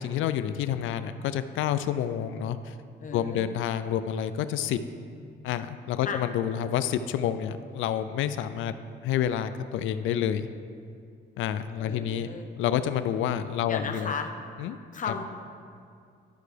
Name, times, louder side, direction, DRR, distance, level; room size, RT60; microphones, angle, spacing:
voice 1, 0.0-2.7 3.1-4.8 5.4-8.7 9.0-10.5 11.4-12.3 12.6-14.1 14.6-14.8 15.1-15.2, left 10 dB, 80° left, 12 dB, 0.4 m, -28 dB
voice 2, 3.0-3.5 6.0-6.2 11.8-12.5 13.7-14.3 14.9-15.2, left 5 dB, 40° left, 5 dB, 0.7 m, -34 dB
12.5 x 4.6 x 3.3 m, 2.3 s
cardioid pair, 90°, 20 cm